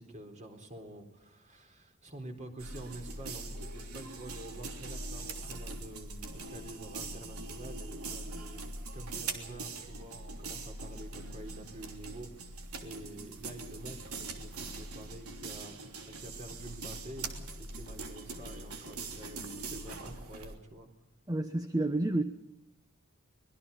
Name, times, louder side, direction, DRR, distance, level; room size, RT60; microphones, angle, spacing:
voice 1, 0.0-8.6 8.9-12.5 12.8-17.3 17.6-20.9, right 1 dB, 35° right, 5 dB, 4.0 m, -47 dB
sound 1, 2.6-20.6, right 3 dB, 85° right, 3.3 m, -42 dB
voice 2, 21.3-22.2, right 2 dB, 15° right, 8 dB, 1.1 m, -29 dB
25.0 x 21.5 x 5.6 m, 0.91 s
head